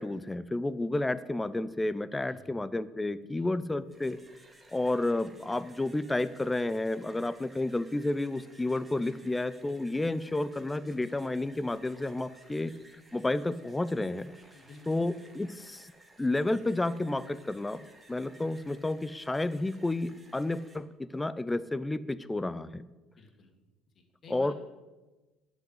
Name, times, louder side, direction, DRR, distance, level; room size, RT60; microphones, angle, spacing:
voice 1, 0.0-4.2 4.7-12.7 13.1-14.3 14.9-15.9 16.2-22.8 24.3-24.5, left 2 dB, 15° left, 17 dB, 0.6 m, -31 dB
voice 2, 2.3-2.6 3.2-3.5 14.5-15.0 23.2-23.5 23.9-24.5, left 4 dB, 40° left, 3 dB, 2.4 m, -52 dB
sound 1, 3.7-20.8, right 2 dB, 15° right, 1.8 m, -58 dB
11.5 x 6.3 x 8.2 m, 1.2 s
figure-of-eight pair, 60°, 0 cm